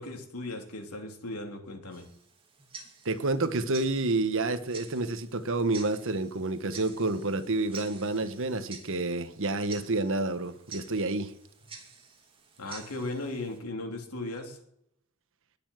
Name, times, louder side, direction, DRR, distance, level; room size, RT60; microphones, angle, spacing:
voice 1, 0.0-2.1 12.6-14.6, left 2 dB, 90° left, 4 dB, 3.2 m, -37 dB
Tick-tock, 1.9-13.6, right 5 dB, 25° right, 2.6 m, -49 dB
voice 2, 3.0-11.3, right 2 dB, 60° right, 11 dB, 1.3 m, -29 dB
20.0 x 7.2 x 7.6 m, 0.74 s
head